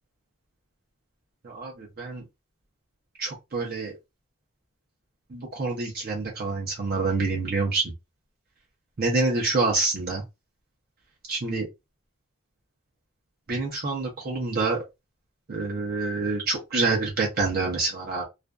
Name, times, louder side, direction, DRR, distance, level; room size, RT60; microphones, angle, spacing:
voice 1, 1.4-2.2 3.2-3.9 5.3-7.8 9.0-10.2 11.3-11.7 13.5-14.8 15.5-18.2, right 3 dB, 45° right, 0.6 m, -27 dB
2.4 x 2.2 x 2.2 m
head